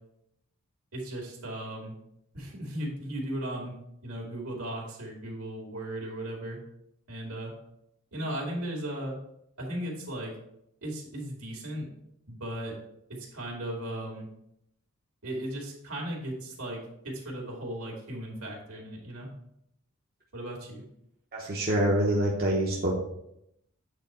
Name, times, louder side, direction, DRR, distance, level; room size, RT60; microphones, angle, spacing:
voice 1, 0.9-1.9 2.3-3.7 4.0-6.6 7.1-7.5 8.1-9.1 9.6-10.3 10.8-11.9 12.3-12.8 13.3-14.3 15.2-19.3 20.3-20.8, right 1 dB, 75° right, -1 dB, 2.3 m, -36 dB
voice 2, 21.3-22.9, right 1 dB, 45° right, -4 dB, 1.1 m, -26 dB
8.2 x 4.1 x 4.3 m, 0.78 s
head